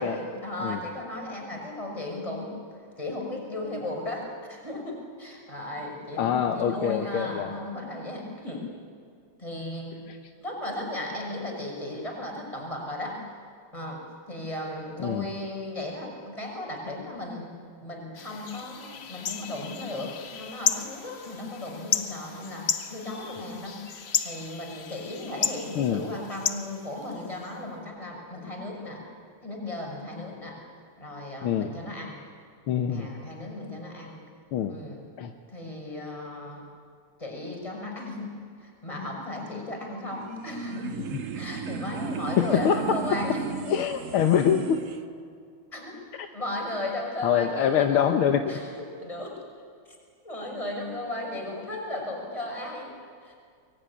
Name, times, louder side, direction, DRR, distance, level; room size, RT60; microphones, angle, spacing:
voice 1, 0.0-2.5 3.0-8.6 9.4-10.0 10.4-13.2 13.7-17.5 17.8-23.8 24.2-29.0 29.4-30.6 31.0-32.1 32.9-34.2 34.7-35.0 35.5-36.6 37.2-38.3 38.6-41.0 41.3-43.4 45.7-46.0 46.3-48.2 48.5-49.4 50.2-52.9 53.2-53.3, left 1 dB, 15° left, 0 dB, 6.1 m, -35 dB
voice 2, 6.2-7.5 10.1-10.2 15.0-15.3 25.8-26.1 31.4-31.7 32.7-33.1 34.5-34.8 35.2-35.3 42.4-43.0 43.7-44.8 46.2-46.3 47.2-48.6, left 8 dB, 80° left, 5 dB, 1.9 m, -25 dB
sound 1, 18.1-27.5, left 7 dB, 55° left, 0.7 m, -33 dB
sound 2, 40.1-45.0, right 5 dB, 50° right, 1.0 m, -34 dB
24.0 x 22.0 x 9.9 m, 2.1 s
omnidirectional pair, 2.3 m